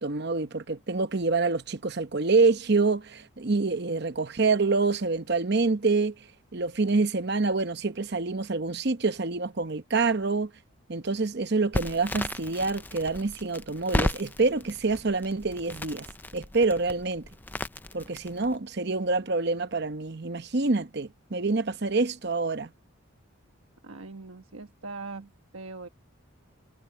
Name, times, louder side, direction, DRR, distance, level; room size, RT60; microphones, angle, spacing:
voice 1, 0.0-6.1 6.5-10.5 10.9-16.1 16.3-17.3 17.9-22.7, right 3 dB, 50° right, 0.9 m, -26 dB
Crackle, 11.7-18.6, left 1 dB, 10° left, 0.4 m, -34 dB
voice 2, 23.8-25.9, right 3 dB, 80° right, 1.3 m, -41 dB
head